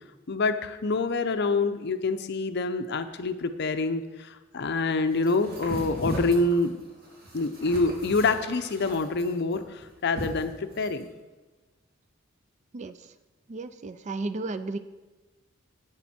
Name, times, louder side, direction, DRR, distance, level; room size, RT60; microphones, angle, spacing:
voice 1, 0.3-6.8 7.3-11.1, left 3 dB, 55° left, 9 dB, 0.6 m, -26 dB
sound 1, 5.2-11.0, equal, 55° right, 2.7 m, -38 dB
voice 2, 12.7-13.1 13.5-14.8, right 3 dB, 35° right, 12 dB, 0.4 m, -34 dB
10.5 x 9.0 x 4.3 m, 1.2 s
head